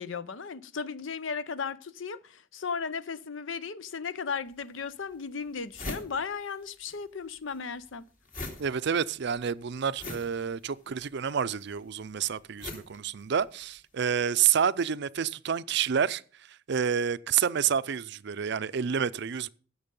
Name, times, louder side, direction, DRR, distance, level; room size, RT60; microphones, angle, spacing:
voice 1, 0.0-8.1, left 5 dB, 75° left, 0.7 m, -36 dB
sound 1, 4.5-4.6 5.1-5.2 5.4-7.0 7.2-13.8, left 2 dB, 45° left, 2.4 m, -42 dB
voice 2, 8.6-16.2 16.7-19.5, right 7 dB, 60° right, 0.5 m, -28 dB
15.5 x 6.6 x 5.4 m
head